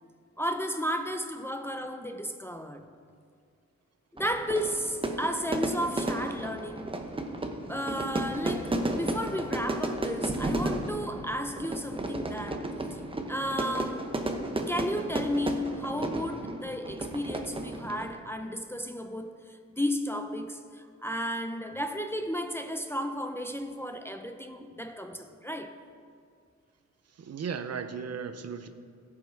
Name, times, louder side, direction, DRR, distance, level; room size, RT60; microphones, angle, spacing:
voice 1, 0.4-2.9 4.1-6.9 7.7-13.0 13.3-14.2 14.5-25.8, equal, 10° left, 0.5 m, -33 dB
Fire / Fireworks, 4.2-18.2, right 2 dB, 20° right, 0.8 m, -33 dB
voice 2, 27.2-28.7, right 6 dB, 60° right, 0.7 m, -36 dB
17.0 x 5.7 x 4.7 m
wide cardioid pair, 130°, 29 cm